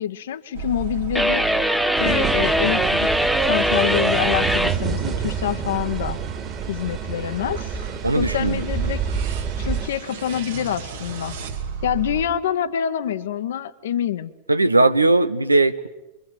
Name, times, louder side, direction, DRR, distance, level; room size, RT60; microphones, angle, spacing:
voice 1, 0.0-1.5 2.0-3.1 3.5-6.2 6.7-7.8 8.2-9.0 9.6-11.4 11.8-14.3, left 10 dB, 60° left, 9 dB, 1.1 m, -26 dB
sound 1, 0.5-12.3, right 7 dB, 60° right, 2.8 m, -36 dB
sound 2, 1.1-4.8, equal, ahead, 1.0 m, -21 dB
sound 3, 2.0-9.9, right 6 dB, 25° right, 3.0 m, -28 dB
voice 2, 8.0-8.7 14.5-15.9, right 2 dB, 85° right, 12 dB, 1.1 m, -18 dB
27.0 x 23.5 x 9.2 m, 0.99 s
figure-of-eight pair, 90°, 0 cm